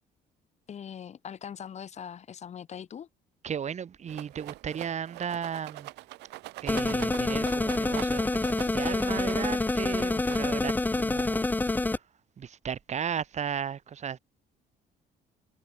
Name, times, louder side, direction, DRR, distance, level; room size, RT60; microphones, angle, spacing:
voice 1, 0.7-3.1, left 8 dB, 40° left, 1.2 m, -41 dB
voice 2, 3.4-5.9 6.6-12.1 12.4-14.2, right 8 dB, 40° right, 3.1 m, -35 dB
Rattle, 4.1-10.8, right 20 dB, 90° right, 4.9 m, -44 dB
sound 1, 6.7-12.0, left 2 dB, 10° left, 0.7 m, -27 dB
cardioid pair, 110°, 17 cm